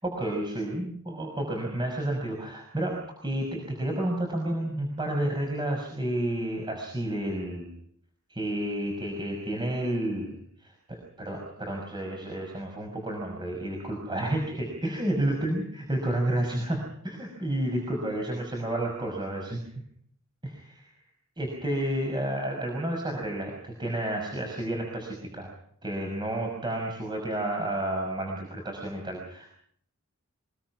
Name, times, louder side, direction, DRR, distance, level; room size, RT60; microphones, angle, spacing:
voice 1, 0.0-7.7 8.3-10.4 10.9-19.6 20.4-20.9 21.4-25.5 25.8-29.5, right 1 dB, 20° right, 1 dB, 5.9 m, -31 dB
24.5 x 22.5 x 6.1 m, 0.65 s
head